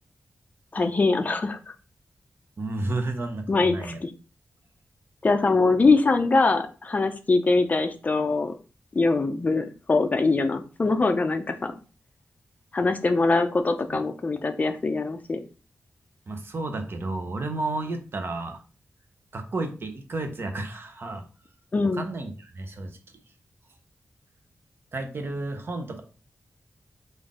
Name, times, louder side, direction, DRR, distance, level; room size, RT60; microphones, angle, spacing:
voice 1, 0.7-1.6 3.5-4.1 5.2-8.5 8.9-11.7 12.7-15.4 21.7-22.1, left 3 dB, 35° left, 7 dB, 0.5 m, -23 dB
voice 2, 2.6-4.0 13.9-14.0 16.3-18.6 19.3-21.3 22.0-22.9 24.9-26.0, right 2 dB, 50° right, 5 dB, 0.8 m, -32 dB
3.8 x 2.6 x 3.6 m, 0.35 s
wide cardioid pair, 115°, 5 cm